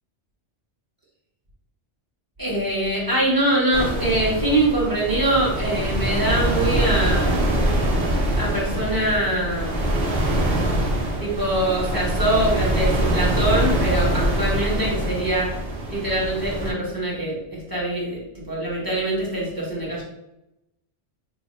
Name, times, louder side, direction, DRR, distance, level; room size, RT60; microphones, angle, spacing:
voice 1, 2.4-7.4 8.4-9.9 11.2-15.6 15.9-18.2 18.5-20.0, right 1 dB, 20° right, -6 dB, 1.3 m, -23 dB
sound 1, 3.7-16.7, right 1 dB, 60° right, 1.0 m, -23 dB
3.4 x 2.2 x 4.2 m, 0.88 s
omnidirectional pair, 1.2 m